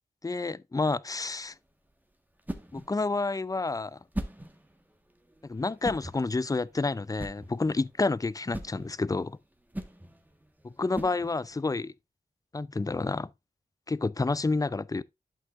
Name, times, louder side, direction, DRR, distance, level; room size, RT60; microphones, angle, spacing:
voice 1, 0.2-1.5 2.7-4.0 5.4-9.4 10.6-11.9 12.5-13.3 13.9-15.0, left 3 dB, 20° left, 0.4 m, -29 dB
sound 1, 1.2-11.7, right 1 dB, 10° right, 1.5 m, -42 dB
11.0 x 5.7 x 2.5 m
wide cardioid pair, 65°, 16 cm